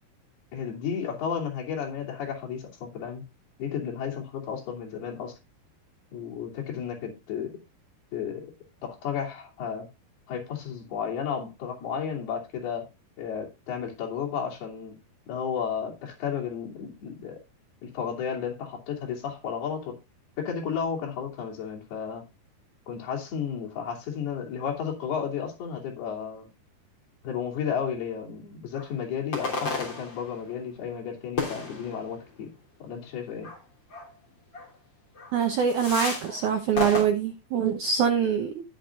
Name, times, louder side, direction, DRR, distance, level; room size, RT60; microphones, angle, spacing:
voice 1, 0.5-3.2 3.6-5.4 6.1-7.6 8.1-8.5 8.8-9.9 10.3-12.9 13.2-14.9 15.3-17.4 17.8-20.0 20.4-22.2 22.9-26.5 27.2-32.5 32.8-33.5, left 7 dB, 65° left, -1 dB, 4.7 m, -33 dB
sound 1, 28.7-28.9 29.3-30.5 31.4-32.2 33.4-33.6 33.9-34.1 34.5-34.7 35.2-35.3 35.7-36.4 36.8-37.0, left 3 dB, 30° left, 3.3 m, -32 dB
voice 2, 35.3-38.6, right 7 dB, 70° right, 5 dB, 1.9 m, -24 dB
18.5 x 6.4 x 2.5 m, 0.24 s
omnidirectional pair, 4.8 m